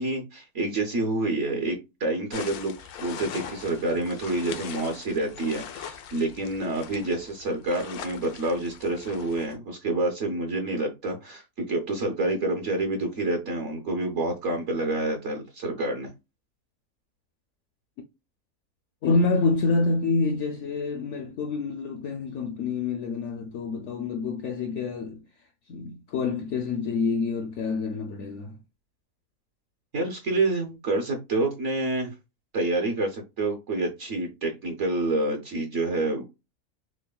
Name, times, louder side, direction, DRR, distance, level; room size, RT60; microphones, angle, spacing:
voice 1, 0.0-16.1 29.9-32.1 32.5-36.2, right 2 dB, 55° right, 1.1 m, -28 dB
sound 1, 2.3-9.6, left 8 dB, 85° left, 1.2 m, -41 dB
voice 2, 19.0-25.2 25.7-28.6, left 4 dB, 65° left, 0.8 m, -27 dB
6.3 x 2.1 x 2.2 m
omnidirectional pair, 1.5 m